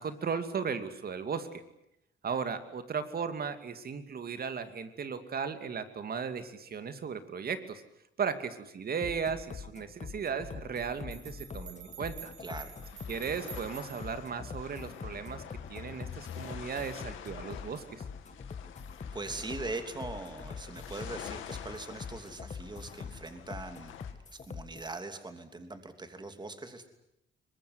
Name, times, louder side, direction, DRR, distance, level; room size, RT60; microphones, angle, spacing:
voice 1, 0.0-1.6 2.2-7.8 8.2-12.3 13.1-15.4 15.7-18.0, right 6 dB, 50° right, 10 dB, 2.6 m, -36 dB
sound 1, 9.0-25.0, left 5 dB, 35° left, 1.6 m, -44 dB
sound 2, 11.1-14.3, right 10 dB, 80° right, 3.0 m, -49 dB
sound 3, 12.8-24.1, left 10 dB, 90° left, 2.6 m, -48 dB
voice 2, 19.1-24.0 24.3-26.9, right 3 dB, 20° right, 8 dB, 3.1 m, -41 dB
23.5 x 21.0 x 9.7 m, 0.82 s
cardioid pair, 90°, 20 cm